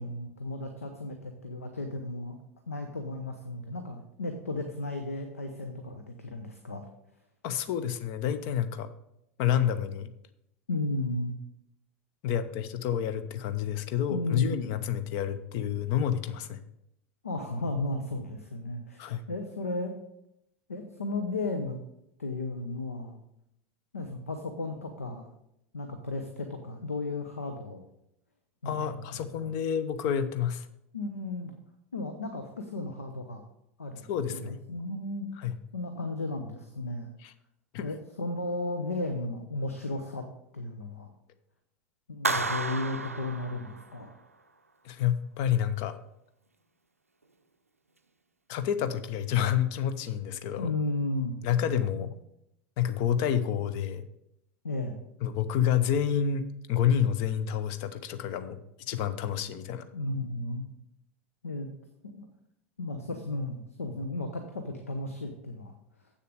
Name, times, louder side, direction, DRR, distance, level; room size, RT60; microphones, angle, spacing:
voice 1, 0.0-2.4 2.7-6.9 10.7-11.4 14.1-14.8 17.2-20.0 20.7-21.8 22.2-23.2 23.9-25.3 25.7-27.8 28.6-29.5 30.9-31.5 31.9-33.5 33.8-34.0 34.3-35.3 35.7-37.1 37.8-40.3 40.5-41.1 42.1-44.1 50.6-51.3 51.9-52.1 54.6-55.0 59.9-60.7 61.4-61.7 62.0-62.3 62.8-66.1, left 2 dB, 80° left, 6 dB, 0.9 m, -34 dB
voice 2, 7.4-8.9 9.4-10.1 12.2-16.6 19.0-19.3 28.6-30.7 34.1-34.6 35.4-35.5 37.2-37.3 37.7-37.8 42.3-42.4 44.8-46.0 48.5-50.7 51.4-52.1 52.8-54.0 55.2-58.6 58.9-59.9, left 9 dB, 50° left, 11 dB, 0.8 m, -29 dB
Clapping, 42.2-44.1, right 3 dB, 85° right, 0.5 m, -32 dB
8.0 x 6.7 x 5.0 m, 0.80 s
figure-of-eight pair, 80°, 8 cm